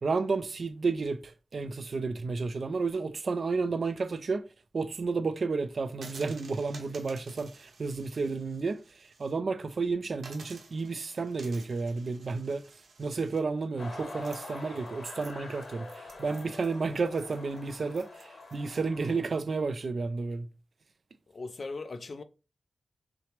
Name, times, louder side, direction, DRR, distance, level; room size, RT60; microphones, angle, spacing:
voice 1, 0.0-4.4 4.7-12.6 13.0-20.5, right 4 dB, 50° right, 0.3 m, -32 dB
sound 1, 5.9-9.3 9.7-9.8 10.2-18.5, right 3 dB, 80° right, 0.9 m, -53 dB
sound 2, 13.8-19.3, left 2 dB, 70° left, 1.3 m, -45 dB
voice 2, 21.3-22.2, left 3 dB, 40° left, 0.3 m, -38 dB
5.7 x 2.0 x 3.1 m
wide cardioid pair, 180°, 0 cm